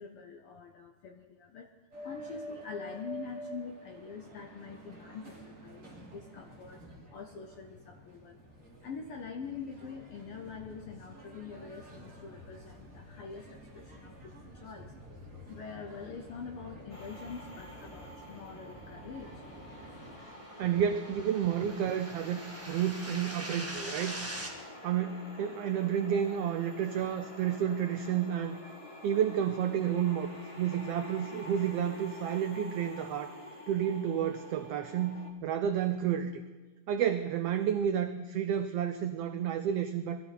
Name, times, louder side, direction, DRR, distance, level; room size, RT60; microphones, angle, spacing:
voice 1, 0.0-1.7 2.0-6.8 7.1-8.4 8.8-14.9 15.2-19.4, left 5 dB, 70° left, 4 dB, 1.3 m, -45 dB
sound 1, 1.9-20.2, equal, 25° right, 3.7 m, -49 dB
sound 2, 16.9-35.3, left 1 dB, 55° left, 0.3 m, -48 dB
sound 3, 20.1-24.5, right 1 dB, 10° right, 0.9 m, -43 dB
voice 2, 20.6-24.2 24.8-28.6 29.0-33.3 33.7-36.4 36.9-40.2, right 9 dB, 85° right, 9 dB, 1.3 m, -31 dB
21.5 x 14.0 x 4.1 m, 1.2 s
omnidirectional pair, 3.5 m